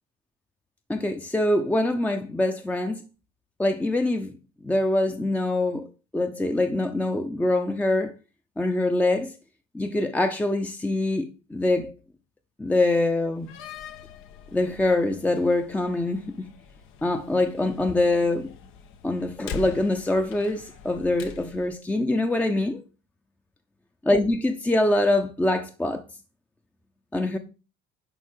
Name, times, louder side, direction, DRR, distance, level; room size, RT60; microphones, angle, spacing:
voice 1, 0.9-3.0 3.6-4.4 4.6-5.9 6.1-8.1 8.6-9.4 9.7-11.9 12.6-13.5 14.5-16.5 17.0-18.6 19.0-22.8 24.1-26.0 27.1-27.4, left 2 dB, 5° left, 0.7 m, -24 dB
Slam, 13.3-21.8, left 6 dB, 75° left, 1.4 m, -43 dB
11.0 x 3.8 x 7.5 m
cardioid pair, 150°, 21 cm